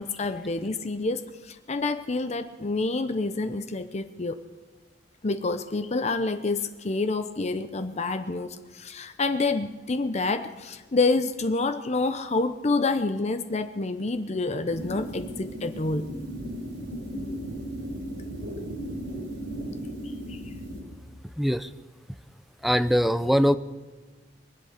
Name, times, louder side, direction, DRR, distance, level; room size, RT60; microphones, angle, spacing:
voice 1, 0.0-4.4 5.2-16.0, left 3 dB, 40° left, 9 dB, 0.7 m, -28 dB
sound 1, 14.7-20.8, right 1 dB, 80° right, 3.9 m, -36 dB
voice 2, 21.4-21.7 22.6-23.6, equal, ahead, 13 dB, 0.5 m, -22 dB
24.5 x 8.2 x 6.6 m, 1.3 s
head